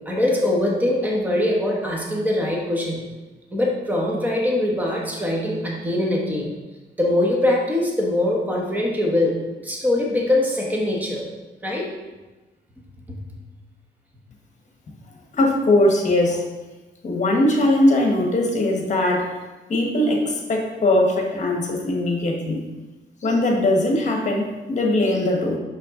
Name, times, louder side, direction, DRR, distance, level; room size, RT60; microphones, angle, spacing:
voice 1, 0.1-3.0 3.5-6.5 7.0-9.4 9.6-11.3 11.6-11.8, left 1 dB, 10° right, -2 dB, 1.2 m, -22 dB
voice 2, 15.3-16.4 17.0-19.2 19.7-22.6 23.2-25.6, left 1 dB, 40° left, 1 dB, 1.3 m, -20 dB
6.0 x 5.7 x 3.8 m, 1.1 s
cardioid pair, 135°, 19 cm